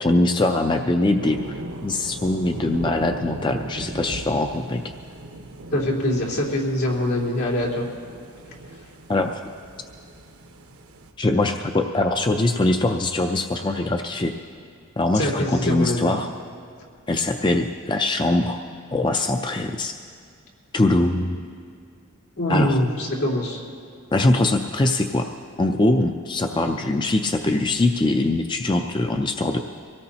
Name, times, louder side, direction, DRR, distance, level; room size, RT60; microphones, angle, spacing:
voice 1, 0.0-1.6 1.8-4.8 9.1-9.4 11.2-14.3 15.0-16.3 17.1-18.6 18.9-19.9 20.7-21.4 22.5-22.8 24.1-25.3 25.6-29.6, left 2 dB, 20° left, 5 dB, 0.4 m, -22 dB
sound 1, 1.2-11.1, right 1 dB, 85° right, 1.1 m, -38 dB
voice 2, 5.7-7.8 15.1-16.1 22.4-23.6, left 1 dB, 85° left, -6 dB, 3.8 m, -23 dB
24.5 x 17.5 x 2.9 m, 2.2 s
head